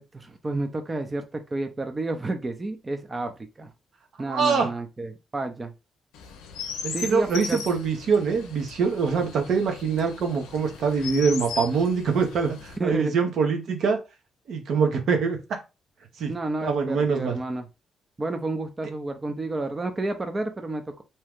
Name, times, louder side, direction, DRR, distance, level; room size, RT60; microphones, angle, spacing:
voice 1, 0.0-3.3 3.6-3.7 4.2-5.7 6.9-7.6 12.8-13.1 16.3-17.7 18.2-21.0, right 2 dB, 30° right, 6 dB, 0.5 m, -30 dB
voice 2, 4.3-4.7 6.8-14.0 14.5-15.6 16.2-16.3 16.6-17.4, right 5 dB, 70° right, 3 dB, 0.8 m, -24 dB
Chirp tweet, 6.1-12.8, left 6 dB, 90° left, 0.6 m, -38 dB
2.8 x 2.3 x 3.5 m, 0.27 s
supercardioid pair, 55°, 0 cm